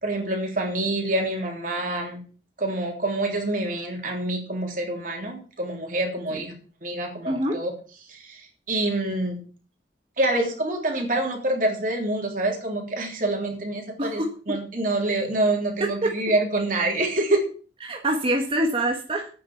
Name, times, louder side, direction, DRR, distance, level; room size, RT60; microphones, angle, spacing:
voice 1, 0.0-2.2 2.6-6.5 6.8-7.7 8.1-9.4 10.2-17.4, right 2 dB, 50° right, 1 dB, 3.5 m, -26 dB
voice 2, 7.2-7.6 14.0-14.3 15.8-16.1 17.8-19.3, right 1 dB, 30° right, 2 dB, 1.5 m, -25 dB
9.2 x 7.7 x 7.2 m, 0.40 s
head